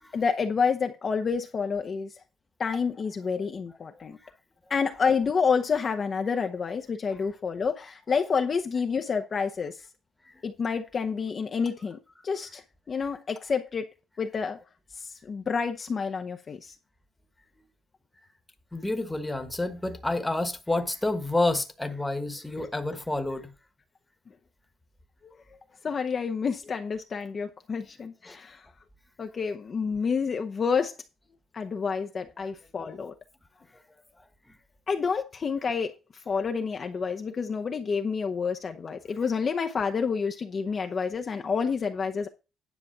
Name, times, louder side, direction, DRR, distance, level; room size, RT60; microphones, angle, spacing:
voice 1, 0.1-2.1 2.6-4.2 4.7-9.8 10.4-13.9 14.2-14.6 14.9-16.8 22.6-22.7 25.2-25.4 25.8-28.7 29.2-30.9 31.5-33.1 34.9-35.9 36.3-42.3, left 5 dB, 35° left, 0.7 m, -29 dB
voice 2, 18.7-23.5 28.2-28.4, left 2 dB, 10° left, 1.3 m, -29 dB
10.0 x 4.1 x 7.1 m
cardioid pair, 125°, 0 cm